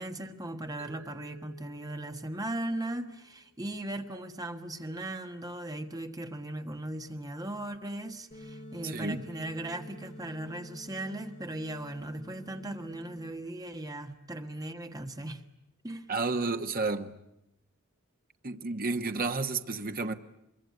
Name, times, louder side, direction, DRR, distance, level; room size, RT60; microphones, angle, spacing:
voice 1, 0.0-15.4 15.8-16.1, right 1 dB, 20° right, 1.3 m, -38 dB
Mallet percussion, 0.8-3.7, right 2 dB, 60° right, 4.1 m, -56 dB
sound 1, 8.3-13.3, equal, 35° left, 6.9 m, -48 dB
voice 2, 8.8-9.2 16.1-17.1 18.4-20.1, right 3 dB, 45° right, 1.2 m, -31 dB
24.5 x 23.5 x 9.4 m
head